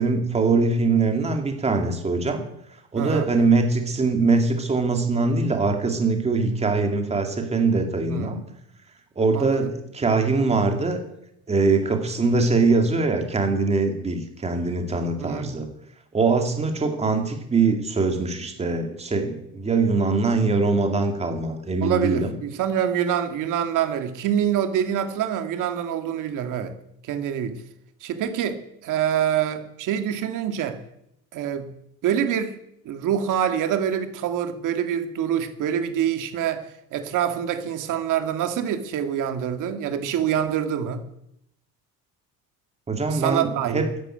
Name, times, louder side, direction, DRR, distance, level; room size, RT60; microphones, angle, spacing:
voice 1, 0.0-2.4 2.9-8.4 9.2-11.0 11.5-15.7 16.1-22.3 42.9-43.8, right 3 dB, 15° right, 4 dB, 2.4 m, -22 dB
voice 2, 2.9-3.3 8.1-8.5 9.3-9.7 15.2-15.6 21.8-26.7 27.0-27.6 28.0-30.8 31.3-31.7 32.0-32.6 32.8-36.6 36.9-41.0 43.1-43.9, right 9 dB, 55° right, 8 dB, 2.1 m, -25 dB
13.5 x 11.5 x 9.0 m, 0.78 s
cardioid pair, 170°, 37 cm